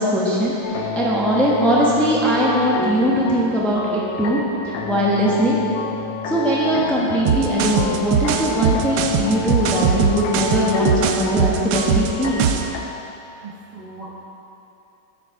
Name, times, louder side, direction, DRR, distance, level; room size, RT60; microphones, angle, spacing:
voice 1, 0.0-5.6 6.3-12.4, equal, ahead, -5 dB, 0.6 m, -20 dB
sound 1, 0.6-12.8, left 3 dB, 80° left, 1.5 m, -28 dB
sound 2, 7.3-12.7, right 8 dB, 75° right, 1.1 m, -21 dB
voice 2, 13.4-14.1, right 3 dB, 50° right, -6 dB, 0.4 m, -42 dB
7.9 x 7.1 x 4.6 m, 2.8 s
omnidirectional pair, 2.2 m